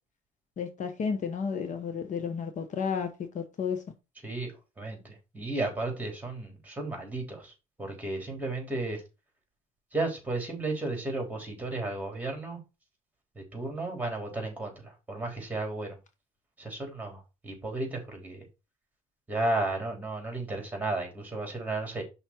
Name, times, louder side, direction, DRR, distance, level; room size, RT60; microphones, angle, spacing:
voice 1, 0.6-3.8, left 6 dB, 50° left, 1.1 m, -32 dB
voice 2, 4.2-9.0 9.9-12.6 13.4-16.0 16.6-18.5 19.3-22.0, right 2 dB, 10° right, 3.7 m, -34 dB
5.7 x 4.2 x 6.0 m
cardioid pair, 110°, 17 cm